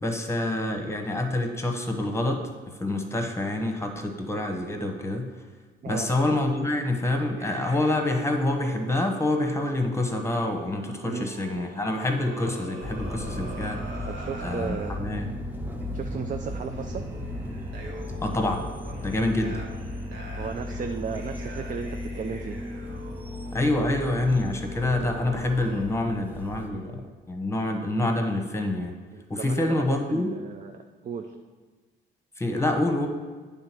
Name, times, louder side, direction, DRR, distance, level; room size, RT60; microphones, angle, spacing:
voice 1, 0.0-5.3 5.9-13.8 14.4-15.3 18.2-18.6 19.0-19.6 23.5-28.9 29.3-30.3 32.4-33.1, left 2 dB, 15° left, 3 dB, 1.2 m, -27 dB
sound 1, 7.4-14.9 15.8-16.0 16.7-25.8, right 1 dB, 80° right, 1.4 m, -44 dB
sound 2, 12.8-26.7, left 1 dB, 10° right, 0.9 m, -36 dB
voice 2, 14.1-15.3 15.9-17.1 20.4-22.6 26.7-26.8 29.1-31.3, right 6 dB, 40° right, 5 dB, 0.5 m, -35 dB
9.0 x 3.7 x 6.0 m, 1.4 s
cardioid pair, 90°, 20 cm